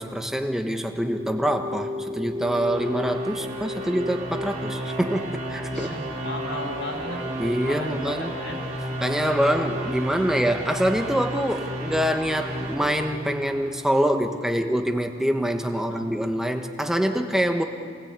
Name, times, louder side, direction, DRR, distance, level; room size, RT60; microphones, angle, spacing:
voice 1, 0.0-6.0 7.4-8.3 9.0-17.6, equal, 5° right, 4 dB, 1.3 m, -25 dB
sound 1, 0.9-14.0, equal, 35° right, 3.4 m, -32 dB
voice 2, 5.7-7.2 7.6-8.6 15.7-16.1, left 1 dB, 80° left, 1 dB, 6.6 m, -35 dB
27.5 x 20.0 x 8.2 m, 2.2 s
head